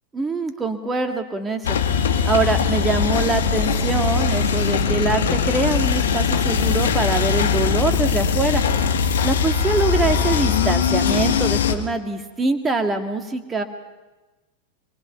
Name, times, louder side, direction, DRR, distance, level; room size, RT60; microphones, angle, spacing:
voice 1, 0.1-1.8 2.2-8.6 9.2-13.6, right 3 dB, 15° right, 5 dB, 2.2 m, -24 dB
sound 1, 1.6-11.7, left 6 dB, 60° left, 1.8 m, -20 dB
25.5 x 23.5 x 5.9 m, 1.1 s
figure-of-eight pair, 90°, 0 cm